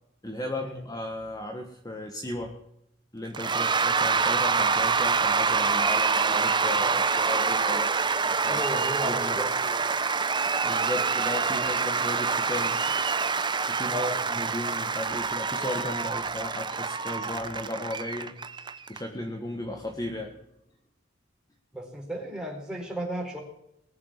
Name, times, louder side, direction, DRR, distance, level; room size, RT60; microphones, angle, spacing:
voice 1, 0.2-2.6 3.1-7.9 8.2-9.5 10.6-12.8 13.7-18.4 18.9-20.4, left 1 dB, 20° left, 2 dB, 1.5 m, -35 dB
Cheering / Applause / Crowd, 3.3-19.0, right 5 dB, 25° right, 0.8 m, -26 dB
voice 2, 8.5-9.5 13.9-14.2 21.7-23.4, equal, 5° right, -1 dB, 4.5 m, -34 dB
21.5 x 7.4 x 7.4 m, 0.81 s
head